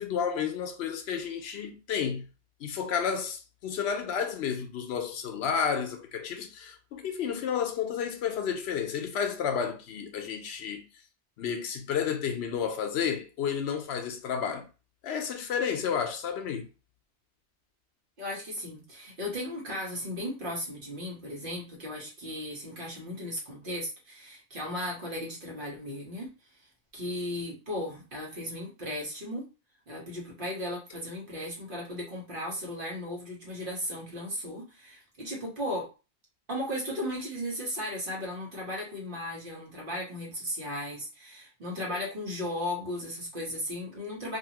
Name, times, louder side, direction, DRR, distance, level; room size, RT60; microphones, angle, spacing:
voice 1, 0.0-2.2 2.6-10.8 11.4-14.7 15.0-16.7, left 7 dB, 80° left, 0.8 m, -31 dB
voice 2, 18.2-26.3 26.9-29.4 29.9-35.9 36.5-44.4, left 1 dB, 55° right, 1.3 m, -36 dB
2.7 x 2.7 x 2.8 m
omnidirectional pair, 1.1 m